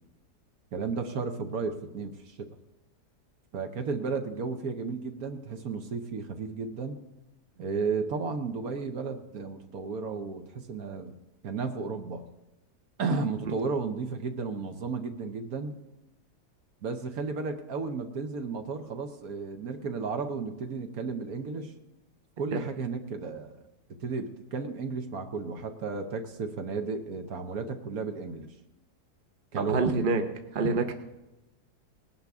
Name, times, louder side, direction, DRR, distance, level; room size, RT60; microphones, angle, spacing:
voice 1, 0.7-2.5 3.5-7.0 7.6-11.1 11.4-12.2 13.0-15.8 16.8-21.7 22.4-23.6 24.0-28.5 29.5-29.9, right 4 dB, 60° right, 6 dB, 1.3 m, -33 dB
voice 2, 29.6-30.2 30.5-30.9, right 4 dB, 40° right, 6 dB, 0.9 m, -26 dB
19.0 x 12.0 x 3.6 m, 1.0 s
omnidirectional pair, 1.8 m